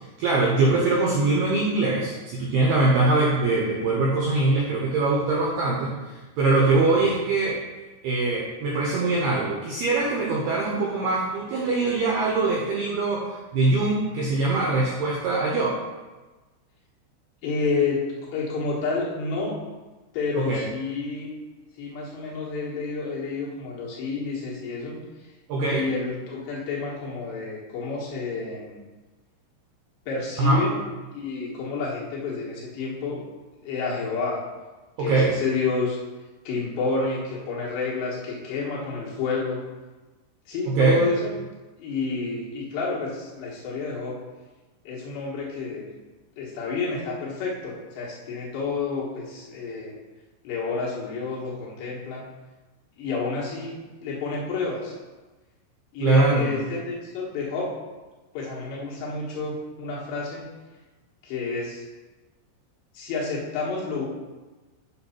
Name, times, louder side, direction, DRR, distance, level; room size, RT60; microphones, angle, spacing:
voice 1, 0.2-5.9 6.4-7.6 8.0-13.3 13.5-15.8 20.4-20.7 25.5-25.8 30.4-30.6 35.0-35.3 40.7-41.0 56.0-56.5, right 3 dB, 85° right, -3 dB, 2.3 m, -22 dB
voice 2, 17.4-19.5 20.1-21.3 21.8-25.0 25.7-28.8 30.1-30.8 31.1-33.2 33.6-34.4 35.0-36.0 36.4-39.6 40.5-41.4 41.8-44.2 44.8-45.9 46.4-49.9 50.4-52.2 53.0-54.9 55.9-57.8 58.3-60.5 61.2-61.8 62.9-64.1, left 4 dB, 70° left, -5 dB, 3.3 m, -29 dB
8.6 x 3.6 x 5.7 m, 1.2 s
omnidirectional pair, 5.8 m